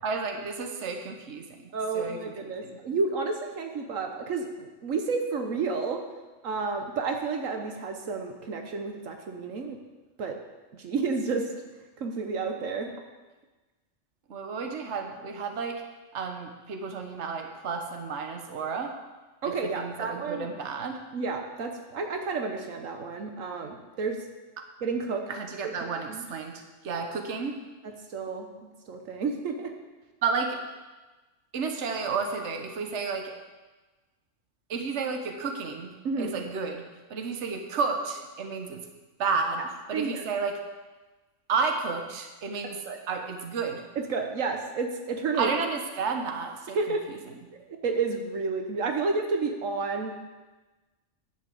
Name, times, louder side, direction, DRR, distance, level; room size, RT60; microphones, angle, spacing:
voice 1, 0.0-2.8 14.3-15.8 16.1-18.9 19.4-21.0 25.3-27.6 30.2-30.6 31.5-33.3 34.7-36.8 37.1-38.8 39.2-39.6 39.9-40.6 41.5-42.8 43.1-43.8 45.4-46.8 47.1-47.2, right 5 dB, 60° right, 4 dB, 1.4 m, -32 dB
voice 2, 1.7-6.0 6.4-9.8 10.2-10.4 10.7-11.5 12.0-12.9 19.4-20.5 21.1-24.2 24.8-25.2 26.1-26.2 27.8-29.7 36.0-36.4 39.9-40.2 42.9-43.0 44.0-45.5 46.7-47.0 47.5-50.2, right 4 dB, 80° right, 4 dB, 1.4 m, -31 dB
10.5 x 6.1 x 7.7 m, 1.2 s
omnidirectional pair, 1.3 m